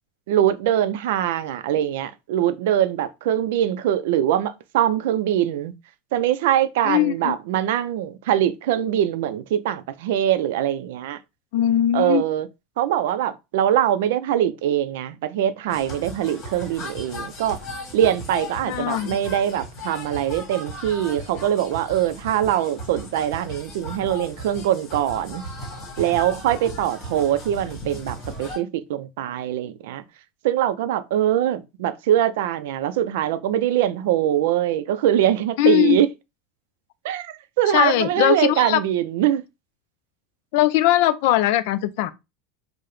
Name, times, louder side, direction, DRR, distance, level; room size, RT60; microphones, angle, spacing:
voice 1, 0.3-5.7 6.1-11.2 11.9-12.5 12.8-17.6 17.9-25.4 26.0-30.0 30.4-36.1 37.0-39.4, right 11 dB, 80° right, 0.4 m, -23 dB
voice 2, 6.8-7.4 11.5-12.2 18.7-19.2 35.6-36.0 37.7-38.8 40.5-42.1, left 13 dB, 65° left, 0.4 m, -20 dB
sound 1, 15.7-28.6, left 1 dB, 40° left, 1.5 m, -36 dB
4.7 x 2.0 x 3.1 m
supercardioid pair, 155°, 0 cm